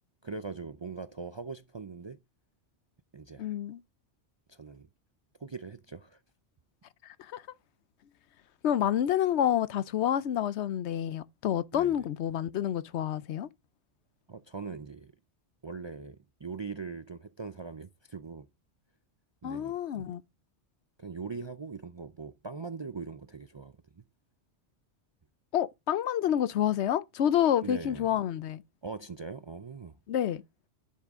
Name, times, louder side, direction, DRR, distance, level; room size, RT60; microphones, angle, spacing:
voice 1, 0.2-2.2 3.1-3.5 4.5-4.9 5.4-6.2 11.7-12.1 14.3-15.1 15.6-18.5 19.4-20.1 21.0-24.0 27.6-28.1 28.8-30.0, right 4 dB, 40° right, 0.4 m, -41 dB
voice 2, 3.4-3.8 7.0-7.4 8.6-13.5 19.4-20.2 25.5-28.6 30.1-30.4, left 10 dB, 75° left, 0.9 m, -28 dB
10.5 x 6.2 x 3.6 m
omnidirectional pair, 1.2 m